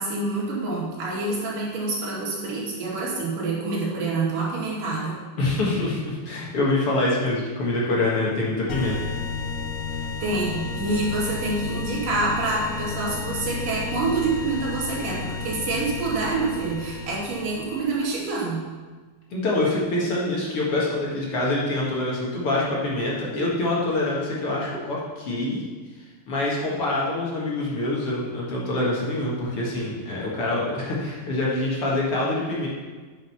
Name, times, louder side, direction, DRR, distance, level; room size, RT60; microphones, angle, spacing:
voice 1, 0.0-5.2 10.2-18.6, right 3 dB, 65° right, -5 dB, 3.8 m, -27 dB
voice 2, 5.4-9.0 19.3-25.6 26.3-32.7, left 2 dB, 50° left, -5 dB, 2.1 m, -25 dB
sound 1, 8.7-18.1, left 5 dB, 85° left, 1.5 m, -32 dB
9.1 x 6.6 x 5.6 m, 1.4 s
omnidirectional pair, 4.1 m